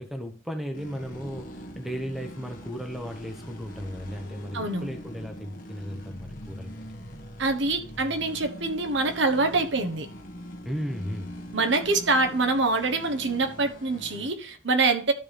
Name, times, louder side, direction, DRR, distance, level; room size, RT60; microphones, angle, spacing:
voice 1, 0.0-6.9 10.6-11.4, equal, ahead, 4 dB, 1.1 m, -35 dB
sound 1, 0.7-14.3, equal, 45° left, 1.5 m, -42 dB
voice 2, 4.5-4.9 7.4-10.1 11.5-15.1, right 3 dB, 60° right, 6 dB, 1.2 m, -25 dB
12.5 x 4.8 x 3.5 m, 0.42 s
head